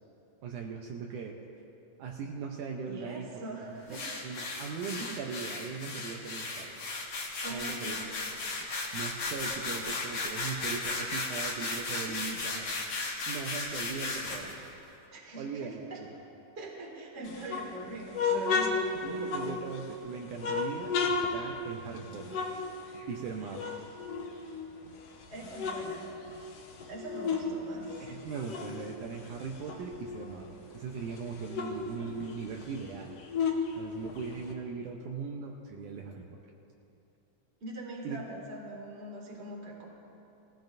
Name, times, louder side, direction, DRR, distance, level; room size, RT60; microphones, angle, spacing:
voice 1, 0.4-1.4 2.0-3.3 3.6-4.0 4.2-6.9 7.5-8.0 8.6-12.9 13.3-14.7 15.4-16.1 19.0-22.5 23.1-23.8 28.0-33.2 33.8-36.4 38.0-38.2, right 5 dB, 75° right, 0 dB, 2.1 m, -39 dB
voice 2, 2.8-4.0 7.4-8.0 15.1-16.0 16.6-18.9 25.3-26.1 26.9-28.1 37.6-39.9, right 2 dB, 25° right, -3 dB, 1.8 m, -42 dB
sound 1, 3.9-14.6, left 3 dB, 50° left, 2.2 m, -35 dB
sound 2, 17.2-19.9 20.4-23.3 23.5-24.9 25.3-27.5 27.8-30.4 30.7-30.8 31.1-34.5, left 4 dB, 65° left, 1.7 m, -33 dB
20.5 x 16.0 x 2.6 m, 2.9 s
omnidirectional pair, 4.0 m